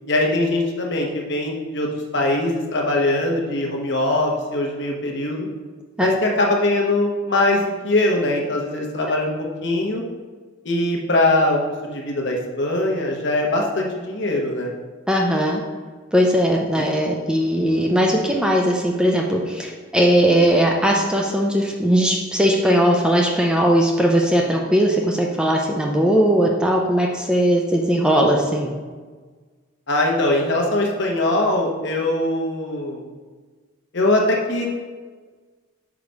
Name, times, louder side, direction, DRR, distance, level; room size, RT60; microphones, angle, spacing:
voice 1, 0.1-1.9 2.1-5.5 6.0-9.3 9.6-10.0 10.6-14.7 29.9-33.0 33.9-34.7, left 2 dB, 55° left, 0 dB, 1.0 m, -21 dB
voice 2, 15.1-15.6 16.1-28.7, equal, 5° right, 0 dB, 0.4 m, -19 dB
4.9 x 4.6 x 5.3 m, 1.4 s
head